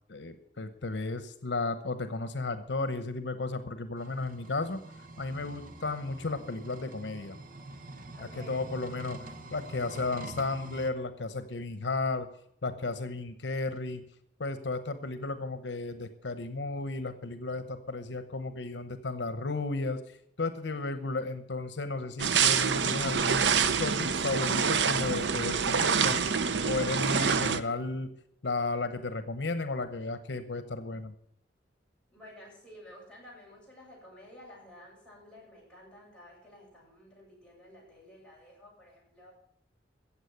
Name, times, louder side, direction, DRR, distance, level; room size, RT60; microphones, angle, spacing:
voice 1, 0.1-4.8 5.2-7.4 8.2-9.3 9.5-12.3 12.6-14.0 14.4-20.0 20.4-23.5 23.8-26.2 26.6-28.1 28.4-31.1, left 3 dB, 80° left, 11 dB, 1.0 m, -34 dB
sound 1, 4.0-10.9, right 2 dB, 50° right, 1.1 m, -45 dB
voice 2, 8.1-8.7 20.7-20.9 32.1-39.3, left 1 dB, 5° left, -6 dB, 7.8 m, -52 dB
sound 2, 22.2-27.6, right 6 dB, 85° right, 0.7 m, -26 dB
15.5 x 7.6 x 8.0 m, 0.73 s
head